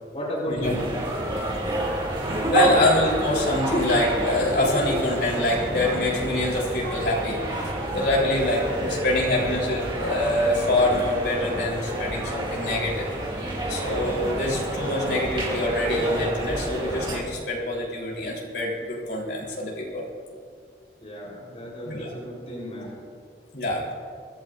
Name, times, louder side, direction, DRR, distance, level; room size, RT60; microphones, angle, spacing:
voice 1, 0.1-0.8 3.7-3.8 7.8-7.9 21.0-22.9, equal, 35° left, -5 dB, 3.9 m, -32 dB
sound 1, 0.6-17.2, right 1 dB, 25° right, 2.5 m, -29 dB
voice 2, 2.5-7.4 7.9-13.1 13.7-20.0 21.8-22.1 22.8-22.9 23.5-23.8, left 1 dB, 70° left, -4 dB, 3.8 m, -25 dB
24.5 x 12.5 x 2.6 m, 2.2 s
head